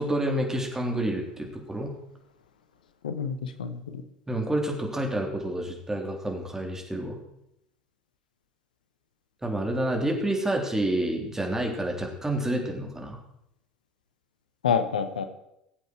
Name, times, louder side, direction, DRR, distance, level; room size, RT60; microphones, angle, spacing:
voice 1, 0.0-1.9 4.3-7.2 9.4-13.2, right 1 dB, 10° right, 1 dB, 3.6 m, -28 dB
voice 2, 3.0-4.0 14.6-15.2, left 7 dB, 80° left, 10 dB, 1.0 m, -28 dB
20.0 x 8.0 x 4.6 m, 0.81 s
figure-of-eight pair, 70°, 4 cm